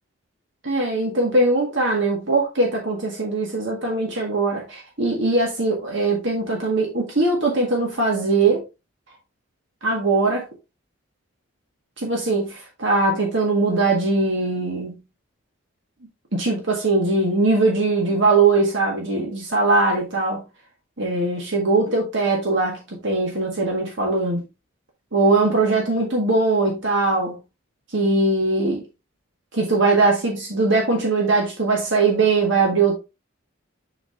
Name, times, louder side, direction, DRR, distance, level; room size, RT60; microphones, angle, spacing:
voice 1, 0.6-8.6 9.8-10.4 12.0-15.0 16.3-20.4 21.0-24.4 25.1-27.4 27.9-28.8 29.5-32.9, right 3 dB, 60° right, 1.7 m, -21 dB
7.1 x 5.8 x 2.6 m
head